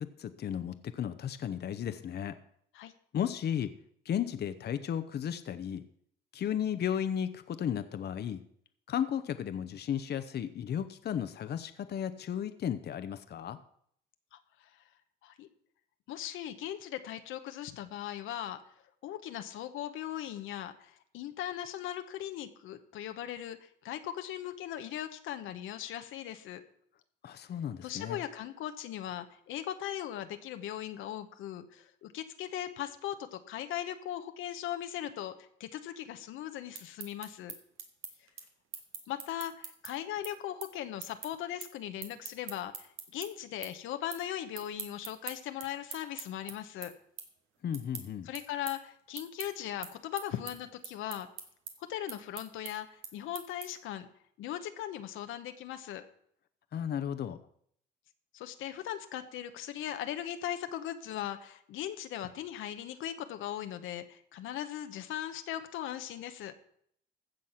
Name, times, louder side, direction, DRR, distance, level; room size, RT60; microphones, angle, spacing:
voice 1, 0.0-2.4 3.1-3.7 4.0-5.8 6.3-8.4 8.9-13.6 27.2-28.2 47.6-48.3 56.7-57.4, left 9 dB, 55° left, 11 dB, 0.8 m, -34 dB
voice 2, 14.3-14.7 15.2-15.5 16.1-18.6 19.0-26.6 27.8-35.3 35.6-37.5 39.1-46.9 48.3-51.3 51.8-54.1 54.4-56.0 58.3-66.5, left 11 dB, 90° left, 8 dB, 1.0 m, -39 dB
sound 1, 36.5-43.3 43.6-44.2 44.5-53.9, right 7 dB, 85° right, 1.9 m, -44 dB
15.0 x 6.5 x 5.7 m, 0.67 s
cardioid pair, 90°, 20 cm